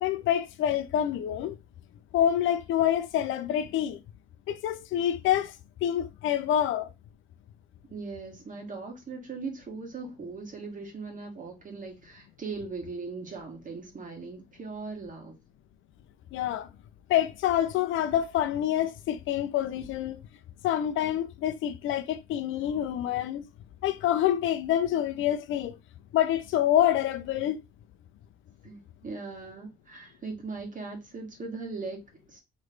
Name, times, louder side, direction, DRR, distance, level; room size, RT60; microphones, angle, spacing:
voice 1, 0.0-1.6 2.1-4.0 4.5-5.5 5.8-6.9 16.3-16.7 17.1-20.2 20.6-23.5 23.8-25.8 26.1-27.6, left 11 dB, 80° left, 0.5 m, -27 dB
voice 2, 7.9-15.4 28.6-32.4, right 4 dB, 40° right, 1.7 m, -39 dB
3.2 x 3.1 x 3.9 m
cardioid pair, 90°, 20 cm